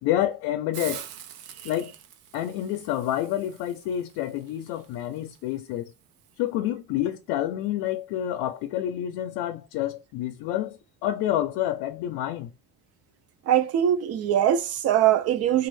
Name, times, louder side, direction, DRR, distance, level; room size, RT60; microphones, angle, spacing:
voice 1, 0.0-1.0 1.6-1.9 2.3-5.9 6.4-12.5, left 12 dB, 85° left, 0.5 m, -28 dB
Hiss, 0.7-6.4, right 10 dB, 80° right, 0.6 m, -45 dB
voice 2, 13.5-15.7, right 10 dB, 45° right, 0.4 m, -22 dB
3.4 x 2.4 x 3.2 m
cardioid pair, 165°, 37 cm